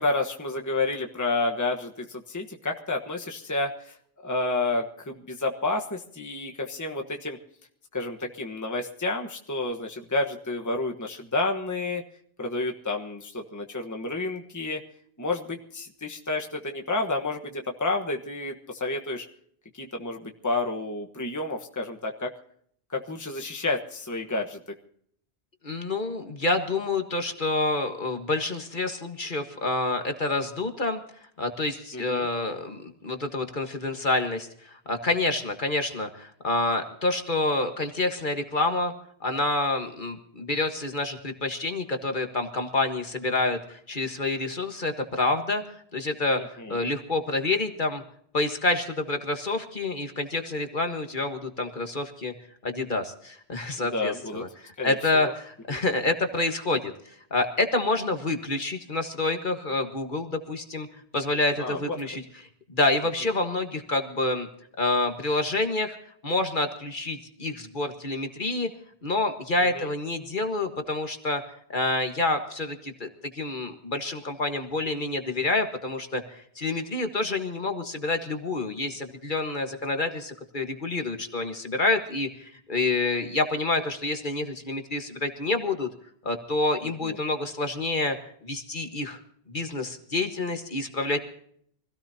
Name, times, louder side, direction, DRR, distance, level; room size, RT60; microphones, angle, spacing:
voice 1, 0.0-4.0 4.2-7.4 7.9-12.0 12.4-14.8 15.2-19.3 19.8-22.3 22.9-24.6 31.9-32.3 46.4-46.8 53.8-54.4 54.8-55.3 55.7-55.8 61.6-62.0 69.7-69.9 87.0-87.2, left 2 dB, 15° left, 2 dB, 1.3 m, -30 dB
voice 2, 25.6-31.0 31.4-38.9 39.2-48.0 48.3-52.3 52.6-56.9 57.3-60.9 61.1-62.2 62.7-64.5 64.8-66.0 66.2-68.7 69.0-71.4 71.7-73.1 73.4-85.9 86.2-88.2 88.4-89.2 89.5-91.2, left 2 dB, 50° left, 6 dB, 1.7 m, -28 dB
25.0 x 17.0 x 2.8 m, 0.64 s
omnidirectional pair, 1.1 m